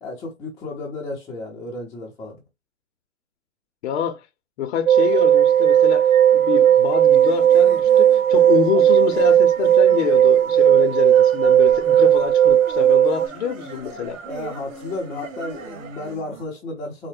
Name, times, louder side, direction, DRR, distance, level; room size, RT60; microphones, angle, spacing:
voice 1, 0.0-2.4 11.7-11.8 14.2-17.1, left 2 dB, 10° left, 0.5 m, -33 dB
voice 2, 3.8-4.2 4.6-6.1 6.3-14.2, left 9 dB, 55° left, 0.6 m, -26 dB
sound 1, 4.9-16.2, right 5 dB, 75° right, 1.3 m, -44 dB
sound 2, 4.9-13.3, right 10 dB, 90° right, 0.5 m, -15 dB
sound 3, 7.0-16.4, right 4 dB, 35° right, 0.9 m, -42 dB
4.2 x 2.1 x 3.3 m
hypercardioid pair, 140°, 39 cm